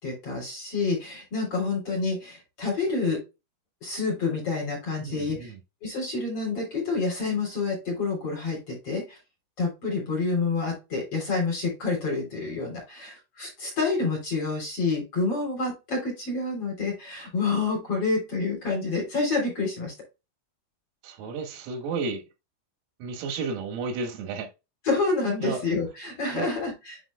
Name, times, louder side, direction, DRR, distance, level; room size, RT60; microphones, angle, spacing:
voice 1, 0.0-3.2 3.8-5.5 5.8-9.2 9.6-19.9 24.8-27.0, left 3 dB, 30° left, 3.6 m, -28 dB
voice 2, 5.0-5.6 21.0-22.2 23.0-24.5 25.4-25.6 26.3-26.5, right 4 dB, 85° right, 4.3 m, -32 dB
11.0 x 5.1 x 2.2 m
omnidirectional pair, 6.0 m